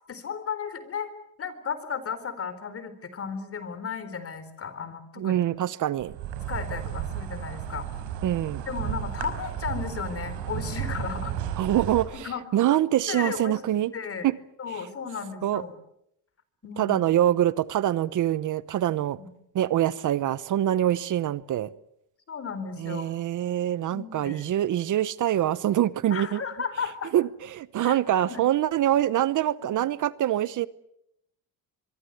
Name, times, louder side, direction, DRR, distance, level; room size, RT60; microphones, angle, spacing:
voice 1, 0.1-1.1 1.4-5.4 6.5-7.9 8.7-11.3 12.1-12.4 12.7-12.8 13.1-13.6 13.9-14.3 14.6-15.8 16.6-17.0 19.2-19.3 22.3-23.1 23.9-24.5 26.1-27.1 27.8-28.5 29.6-29.8, left 6 dB, 35° left, 4.2 m, -34 dB
voice 2, 5.2-6.1 8.2-8.6 11.6-13.9 14.2-14.3 15.4-15.6 16.8-19.2 19.5-21.7 22.8-26.4 27.1-30.7, right 12 dB, 50° right, 0.9 m, -25 dB
Insect, 6.0-12.0, right 9 dB, 85° right, 5.6 m, -33 dB
24.5 x 24.0 x 7.9 m
cardioid pair, 120°, 38 cm